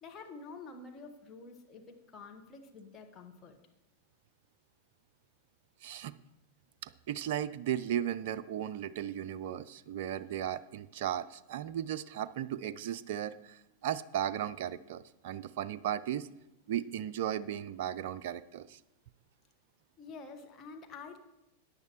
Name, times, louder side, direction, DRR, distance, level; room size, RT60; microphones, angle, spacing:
voice 1, 0.0-3.6 20.0-21.2, left 4 dB, 25° left, 3 dB, 1.4 m, -48 dB
voice 2, 5.8-6.2 6.8-16.3 16.7-18.8, right 10 dB, 50° right, 15 dB, 0.3 m, -36 dB
14.5 x 9.6 x 3.1 m, 0.98 s
figure-of-eight pair, 90°, 0 cm